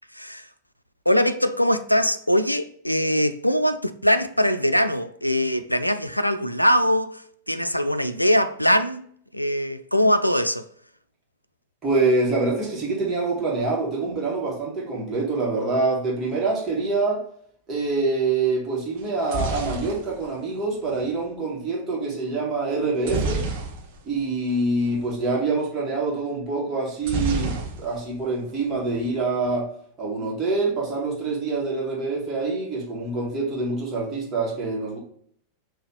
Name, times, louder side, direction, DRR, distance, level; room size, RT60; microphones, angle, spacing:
voice 1, 0.1-0.5 1.1-9.0 9.3-10.7, equal, 90° left, 0.3 m, -22 dB
voice 2, 11.8-17.3 17.7-23.4 24.0-29.7 30.0-35.0, right 3 dB, 25° right, 1.9 m, -25 dB
sound 1, 19.0-21.1 23.0-24.2 24.5-24.6 24.9-25.1 27.0-28.2 28.5-29.1, right 3 dB, 45° right, 1.2 m, -30 dB
5.6 x 3.0 x 3.1 m
figure-of-eight pair, 90°, 0 cm